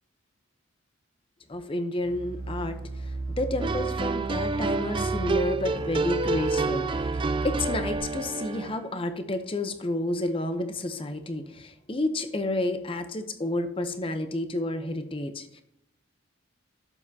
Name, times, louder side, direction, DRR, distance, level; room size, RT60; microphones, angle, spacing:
voice 1, 1.5-7.2 7.4-15.6, left 1 dB, 25° left, 8 dB, 0.7 m, -30 dB
sound 1, 2.0-8.0, right 3 dB, 80° right, 0.8 m, -35 dB
sound 2, 3.6-8.8, right 3 dB, 25° right, 0.3 m, -29 dB
11.5 x 7.5 x 2.8 m, 0.79 s
head